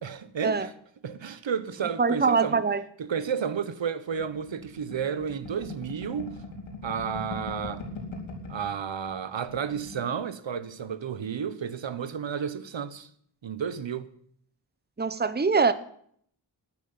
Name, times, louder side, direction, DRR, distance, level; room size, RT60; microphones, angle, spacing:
voice 1, 0.0-0.7 1.0-2.6 3.0-6.4 6.8-7.8 8.5-13.1 13.4-14.1, right 7 dB, 70° right, 1.2 m, -32 dB
voice 2, 2.0-2.8 15.0-15.7, right 5 dB, 20° right, 1.0 m, -23 dB
sound 1, 4.2-8.7 9.1-9.2 9.4-10.0, left 3 dB, 85° left, 4.2 m, -40 dB
12.5 x 9.0 x 9.7 m
cardioid pair, 60°, 46 cm